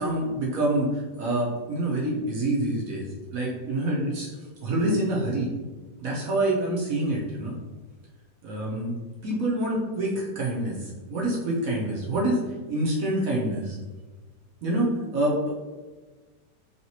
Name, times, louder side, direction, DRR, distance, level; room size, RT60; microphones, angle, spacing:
voice 1, 0.0-4.3 4.6-5.5 6.0-7.5 8.4-8.9 9.2-12.4 12.7-13.8 14.6-15.5, right 1 dB, 65° right, -3 dB, 0.9 m, -26 dB
3.0 x 2.8 x 2.8 m, 1.3 s
omnidirectional pair, 1.9 m